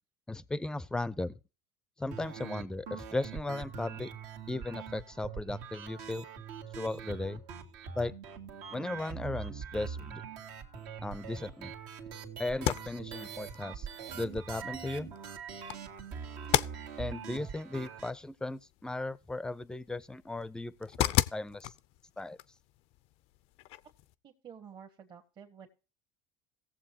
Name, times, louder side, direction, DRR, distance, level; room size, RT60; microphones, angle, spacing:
voice 1, 0.3-1.3 2.0-4.1 4.5-6.3 6.8-7.4 8.0-8.1 8.7-10.2 11.0-11.7 12.4-13.9 14.1-15.1 17.0-21.7 22.2-22.4, left 2 dB, 5° left, 0.5 m, -36 dB
sound 1, 2.1-18.1, right 6 dB, 75° right, 1.8 m, -43 dB
sound 2, 12.5-24.1, left 15 dB, 60° left, 0.5 m, -37 dB
voice 2, 24.2-25.7, right 7 dB, 40° right, 1.4 m, -51 dB
17.5 x 7.3 x 2.8 m
supercardioid pair, 115°, 12 cm